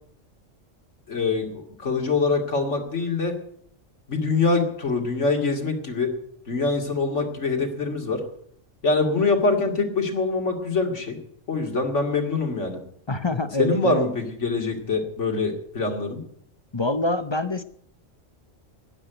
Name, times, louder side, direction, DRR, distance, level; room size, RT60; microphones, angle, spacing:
voice 1, 1.1-3.3 4.1-6.1 6.5-8.2 8.8-11.2 11.5-12.8 13.6-16.2, left 3 dB, 65° left, 2 dB, 2.7 m, -24 dB
voice 2, 13.1-14.1 16.7-17.6, left 1 dB, 30° left, 11 dB, 0.6 m, -25 dB
12.0 x 9.8 x 9.1 m, 0.66 s
omnidirectional pair, 1.3 m